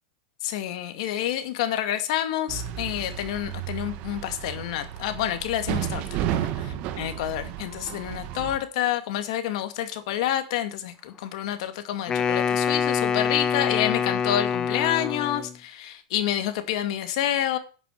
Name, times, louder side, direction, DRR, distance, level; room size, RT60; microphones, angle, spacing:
voice 1, 0.4-6.5 7.0-17.6, left 11 dB, 60° left, 2.3 m, -28 dB
sound 1, 2.5-8.6, right 11 dB, 40° right, 1.3 m, -32 dB
Wind instrument woodwind instrument, 12.1-15.6, left 7 dB, 20° left, 0.7 m, -25 dB
11.0 x 6.8 x 7.9 m
supercardioid pair, 165°, 4 cm